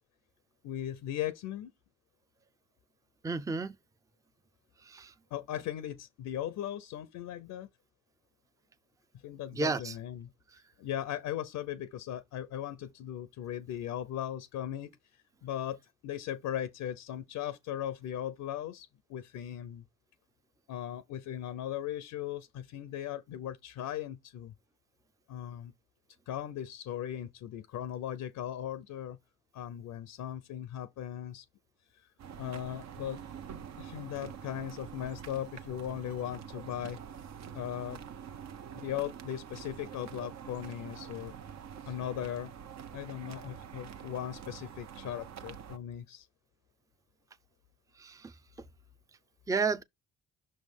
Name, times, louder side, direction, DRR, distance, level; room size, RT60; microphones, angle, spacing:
voice 1, 0.6-1.7 5.3-7.7 9.2-10.3 10.8-15.0 15.4-15.8 16.0-19.8 20.7-24.5 25.3-25.7 26.3-29.2 29.5-31.4 32.4-33.2 33.8-37.0 37.5-38.0 38.7-41.3 41.9-42.5 42.9-46.3, left 11 dB, 80° left, 0.7 m, -38 dB
voice 2, 3.2-3.7 4.8-5.1 9.5-10.0 48.0-48.3 49.5-49.8, right 4 dB, 10° right, 0.5 m, -31 dB
sound 1, 32.2-45.8, right 8 dB, 60° right, 0.9 m, -46 dB
6.1 x 3.2 x 5.3 m
cardioid pair, 90°, 30 cm